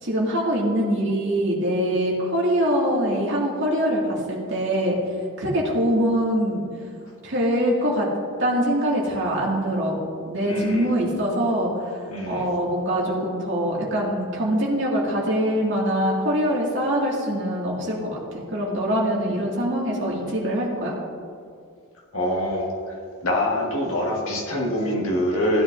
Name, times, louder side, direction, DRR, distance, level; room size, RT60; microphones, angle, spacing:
voice 1, 0.0-5.0 5.4-6.6 7.2-8.1 8.4-10.0 10.3-20.9, equal, 55° right, -4 dB, 2.3 m, -23 dB
voice 2, 10.5-10.9 12.1-12.5 22.1-22.7 23.2-25.6, left 1 dB, 70° left, -3 dB, 2.0 m, -24 dB
16.0 x 9.6 x 2.7 m, 2.2 s
head